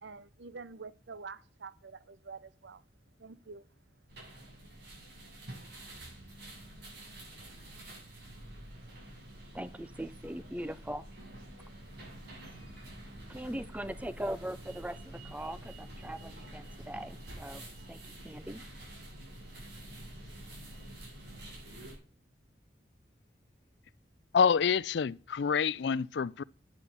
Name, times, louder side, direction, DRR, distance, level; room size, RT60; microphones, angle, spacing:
voice 1, 0.0-2.8 3.2-3.7, right 4 dB, 80° right, 0.7 m, -47 dB
sound 1, 4.1-21.9, right 1 dB, 65° right, 7.4 m, -48 dB
voice 2, 9.5-11.1 13.3-17.6 17.9-18.6, right 1 dB, 10° right, 0.7 m, -40 dB
voice 3, 24.3-26.4, left 6 dB, 70° left, 0.4 m, -27 dB
9.7 x 8.0 x 7.2 m
head